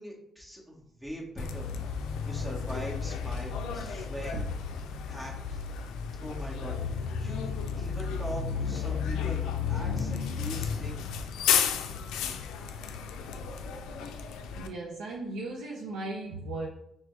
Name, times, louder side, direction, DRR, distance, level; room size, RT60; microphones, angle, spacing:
voice 1, 0.0-1.7 2.2-4.5 5.1-5.6 6.2-11.0, equal, 10° right, -2 dB, 1.3 m, -41 dB
Bus, 1.4-14.7, left 6 dB, 90° left, 0.4 m, -32 dB
voice 2, 14.6-16.7, right 2 dB, 90° right, -2 dB, 0.5 m, -36 dB
5.9 x 2.2 x 3.2 m, 0.80 s
cardioid pair, 90°, 0 cm